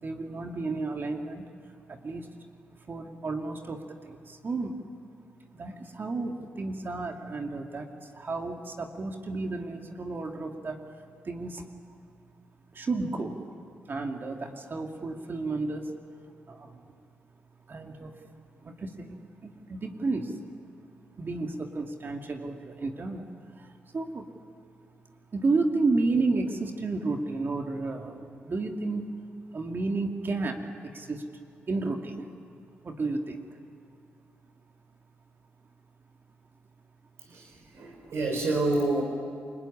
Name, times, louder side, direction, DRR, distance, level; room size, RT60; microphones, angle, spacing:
voice 1, 0.0-2.3 2.9-4.8 5.6-10.8 11.2-11.6 12.7-13.4 13.9-15.9 16.5-16.8 17.7-18.1 18.6-20.4 21.2-24.3 25.3-29.1 29.5-31.2 31.7-32.3 32.8-33.4, right 3 dB, 45° right, 3 dB, 2.4 m, -32 dB
voice 2, 37.3-39.0, right 2 dB, 70° right, 2 dB, 3.8 m, -28 dB
28.5 x 21.0 x 10.0 m, 2.2 s
supercardioid pair, 50°, 5 cm